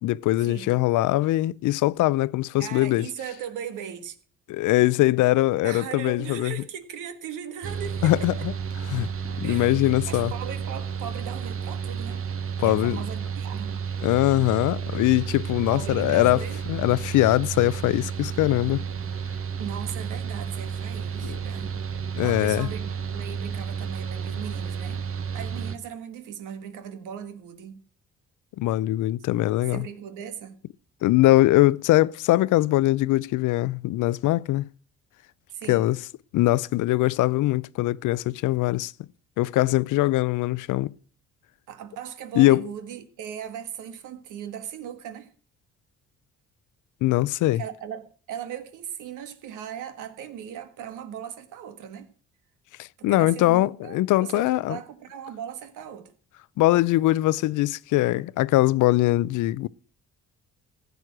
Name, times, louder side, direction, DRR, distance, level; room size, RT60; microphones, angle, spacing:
voice 1, 0.0-3.1 4.5-6.5 8.0-8.5 8.9-9.1 9.4-10.3 12.6-13.0 14.0-18.8 21.2-21.3 22.1-22.7 28.6-29.8 31.0-34.7 35.7-36.0 36.3-38.9 39.4-40.9 42.3-42.6 47.0-47.6 52.8-54.8 56.6-59.7, left 17 dB, 85° left, 0.5 m, -22 dB
voice 2, 2.6-4.2 5.6-8.4 9.4-12.2 12.6-13.8 15.7-16.6 19.6-21.8 22.2-25.0 25.3-27.8 29.7-30.6 35.5-35.8 41.7-45.3 47.5-52.1 53.0-56.1, right 8 dB, 90° right, 1.7 m, -38 dB
Mechanical fan, 7.6-25.8, right 6 dB, 45° right, 1.3 m, -32 dB
15.5 x 8.2 x 6.1 m
cardioid pair, 90°, 30 cm